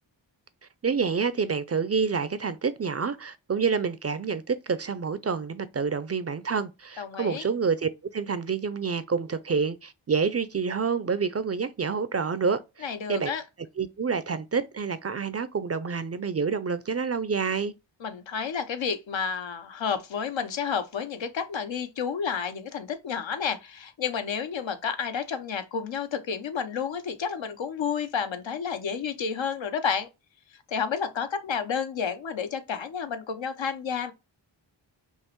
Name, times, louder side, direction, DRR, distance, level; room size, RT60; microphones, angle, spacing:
voice 1, 0.8-13.3 13.8-17.7, right 5 dB, 35° right, 0.5 m, -28 dB
voice 2, 7.0-7.5 12.8-13.4 18.0-30.1 30.7-34.1, left 6 dB, 75° left, 0.8 m, -30 dB
5.3 x 2.0 x 3.0 m
cardioid pair, 45°, 46 cm